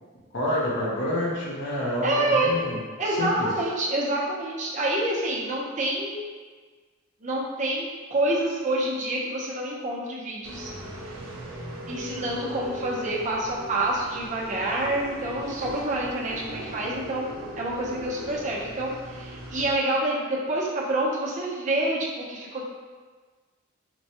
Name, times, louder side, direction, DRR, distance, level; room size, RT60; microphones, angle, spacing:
voice 1, 0.3-2.8 3.2-3.5, left 1 dB, 60° left, -5 dB, 0.9 m, -28 dB
voice 2, 2.0-2.5 3.0-6.2 7.2-7.8 8.1-10.7 11.9-22.6, right 1 dB, 35° right, -4 dB, 0.6 m, -27 dB
sound 1, 10.4-19.7, equal, 70° right, 0.7 m, -39 dB
4.4 x 2.2 x 2.8 m, 1.4 s
head